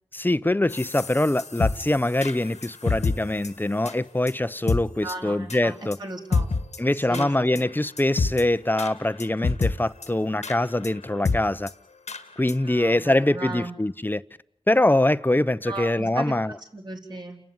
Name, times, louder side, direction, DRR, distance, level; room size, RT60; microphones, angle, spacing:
voice 1, 0.1-6.0 6.8-11.7 12.4-14.2 14.7-16.5, left 1 dB, 15° left, 0.8 m, -23 dB
sound 1, 0.7-3.1 3.4-3.5 3.9-4.0 4.3-4.4 4.7-4.8 5.1-5.2 5.5-5.6 5.9-6.0 6.3-6.8 7.1-7.3 7.5-7.6 8.0-8.4 8.8-8.9 9.2-9.7 10.0-10.1 10.4-10.6 10.8-10.9 11.2-11.4 11.7-11.8 12.1-12.2 12.5-12.6 13.0-13.1, left 4 dB, 90° left, 1.8 m, -26 dB
voice 2, 5.0-5.7 6.0-6.5 7.1-7.7 12.6-13.7 15.6-16.3 16.7-17.4, right 2 dB, 40° right, 4.0 m, -36 dB
30.0 x 12.5 x 9.6 m
wide cardioid pair, 65°, 11 cm